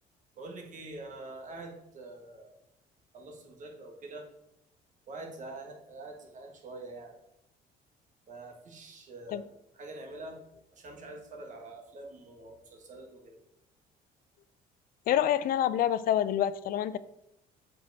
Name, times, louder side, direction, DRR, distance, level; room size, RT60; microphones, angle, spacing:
voice 1, 0.4-2.5 3.1-4.3 5.1-7.1 8.3-9.5 9.7-10.4 10.7-13.4, right 2 dB, 50° right, 1 dB, 1.6 m, -45 dB
voice 2, 15.1-17.0, left 11 dB, 60° left, 16 dB, 0.4 m, -27 dB
7.4 x 4.6 x 4.1 m, 0.82 s
cardioid pair, 110°, 17 cm